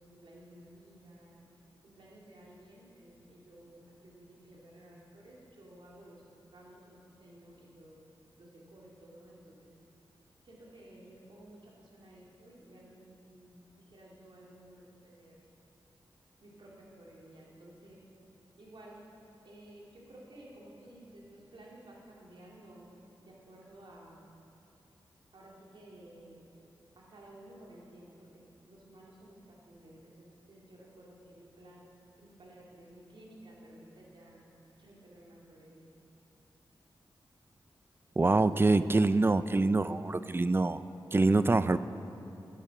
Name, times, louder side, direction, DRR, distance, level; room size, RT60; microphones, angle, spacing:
voice 1, 0.0-1.4 1.8-6.2 6.5-8.0 8.4-9.7 10.4-15.4 16.4-18.1 18.6-19.0 19.4-22.9 23.2-24.3 25.3-26.4 27.0-31.8 32.2-34.5 34.8-35.9, right 1 dB, 70° right, -3 dB, 2.3 m, -54 dB
voice 2, 38.2-40.8 41.1-41.8, right 3 dB, 25° right, 14 dB, 0.4 m, -25 dB
11.5 x 10.5 x 5.8 m, 2.8 s
cardioid pair, 60°, 9 cm